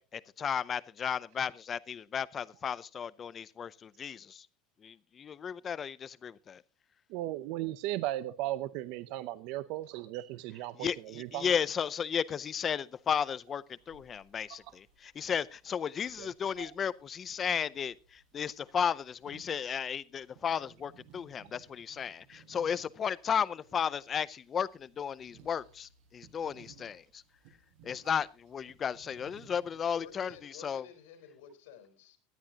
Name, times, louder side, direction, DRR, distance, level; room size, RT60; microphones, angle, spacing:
voice 1, 0.0-4.5 4.8-6.6 10.8-27.2 27.8-30.9, left 7 dB, 20° left, 0.6 m, -34 dB
voice 2, 7.1-11.6 16.2-16.3 16.6-16.7, right 15 dB, 50° right, 0.6 m, -36 dB
sound 1, 10.9-30.4, right 7 dB, 70° right, 5.9 m, -62 dB
voice 3, 30.0-32.2, left 7 dB, 85° left, 4.1 m, -52 dB
18.5 x 13.0 x 2.9 m
supercardioid pair, 170°, 0 cm